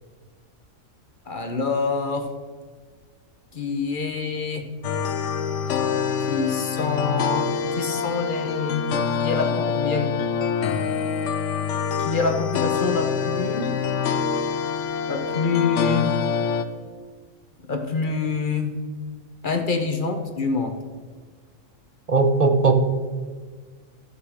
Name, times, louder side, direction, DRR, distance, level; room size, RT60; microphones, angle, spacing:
voice 1, 1.3-2.3 3.5-4.6 6.3-8.8 9.2-10.1 12.0-13.7 15.1-16.1 17.7-18.7 19.4-20.8, left 4 dB, 45° left, 6 dB, 1.0 m, -26 dB
sound 1, 4.8-16.6, left 6 dB, 75° left, 1.1 m, -25 dB
voice 2, 22.1-22.7, right 4 dB, 35° right, 6 dB, 0.7 m, -18 dB
13.0 x 5.7 x 6.4 m, 1.5 s
omnidirectional pair, 1.4 m